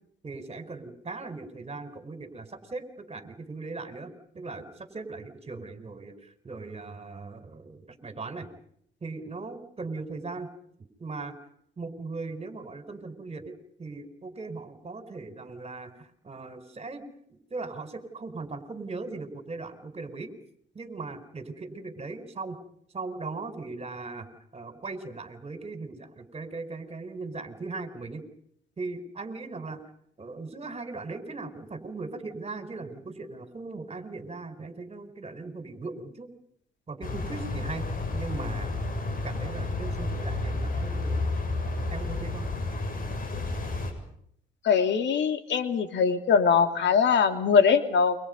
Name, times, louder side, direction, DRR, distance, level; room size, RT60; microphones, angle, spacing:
voice 1, 0.2-8.5 9.0-10.5 11.0-11.3 11.8-17.0 17.3-20.3 20.7-22.6 22.9-28.2 28.8-29.8 30.2-36.3 36.9-38.8 39.2-41.2 41.9-42.5, right 3 dB, 30° right, 9 dB, 5.1 m, -39 dB
sound 1, 37.0-43.9, left 2 dB, 45° left, 7.5 m, -31 dB
voice 2, 44.6-48.2, left 6 dB, 65° left, 7 dB, 3.0 m, -22 dB
29.5 x 25.0 x 5.5 m, 0.69 s
cardioid pair, 90°, 20 cm